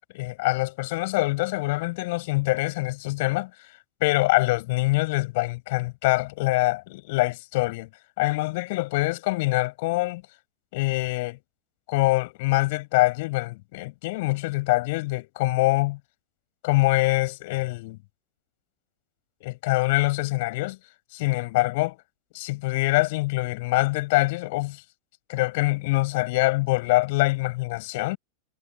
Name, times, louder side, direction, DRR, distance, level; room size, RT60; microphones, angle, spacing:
voice 1, 0.1-3.5 4.0-7.9 8.2-10.2 10.7-11.4 11.9-16.0 16.6-18.0 19.4-20.8 21.1-22.0 22.3-24.8 25.3-28.2, left 22 dB, 50° left, 7.0 m, -24 dB
figure-of-eight pair, 90°, 0 cm